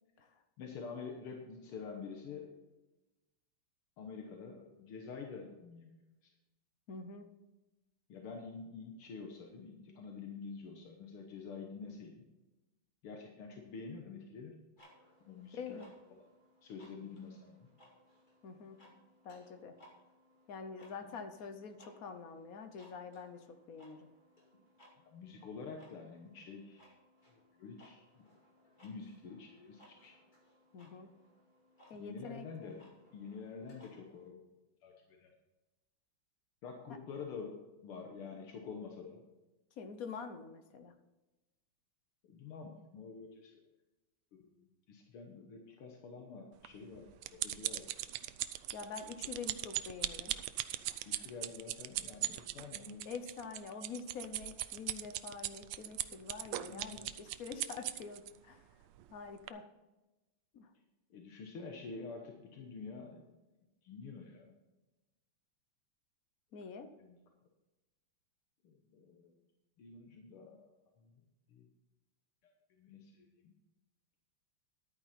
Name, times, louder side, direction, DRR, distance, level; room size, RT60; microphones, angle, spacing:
voice 1, 0.6-2.5 4.0-6.0 6.2-6.3 8.1-12.3 13.0-14.6 15.2-15.8 16.6-17.7 21.0-21.1 25.1-26.9 27.3-28.3 28.8-30.2 31.9-32.9 33.1-34.5 34.8-35.3 36.6-39.3 42.3-43.6 44.3-47.9 51.1-53.1 56.7-57.1 61.1-63.3 63.8-64.5 67.0-67.2 68.6-69.3 69.8-70.7 71.0-71.1 71.5-71.7 72.4-72.5 72.8-73.6, left 5 dB, 80° left, 2 dB, 2.1 m, -48 dB
voice 2, 6.9-7.3 15.6-15.9 18.4-18.8 19.2-19.8 20.5-24.1 30.7-31.1 31.9-32.7 39.8-40.9 48.7-50.3 53.0-58.6 59.1-59.7 60.5-60.7 66.5-66.9, left 5 dB, 55° left, 8 dB, 1.1 m, -46 dB
sound 1, 14.8-34.3, left 1 dB, 20° left, 2.4 m, -65 dB
sound 2, 46.6-58.3 58.9-59.1 59.5-59.6, right 14 dB, 85° right, 1.5 m, -39 dB
12.0 x 9.1 x 4.2 m, 1.1 s
omnidirectional pair, 2.4 m